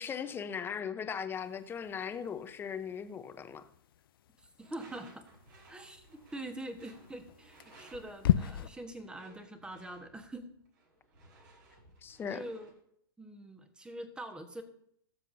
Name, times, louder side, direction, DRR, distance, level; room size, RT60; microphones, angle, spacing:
voice 1, 0.0-3.6 12.0-12.4, left 7 dB, 15° left, 0.8 m, -38 dB
sound 1, 1.3-8.7, left 11 dB, 60° left, 0.5 m, -37 dB
voice 2, 4.4-5.2 5.7-6.0 6.3-10.5 12.3-12.7 13.2-14.6, right 1 dB, 5° right, 1.4 m, -44 dB
Door / Screech, 4.6-12.8, right 2 dB, 55° right, 4.0 m, -60 dB
18.5 x 7.3 x 2.7 m
figure-of-eight pair, 110°, 13 cm